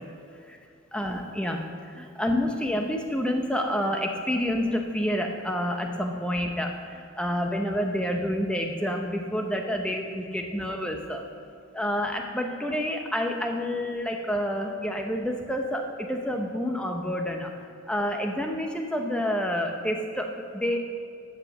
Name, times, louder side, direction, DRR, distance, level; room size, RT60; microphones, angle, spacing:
voice 1, 0.9-1.6 1.9-11.2 11.7-17.5 17.9-20.8, equal, 5° left, 3 dB, 0.8 m, -28 dB
13.0 x 5.0 x 7.0 m, 2.4 s
head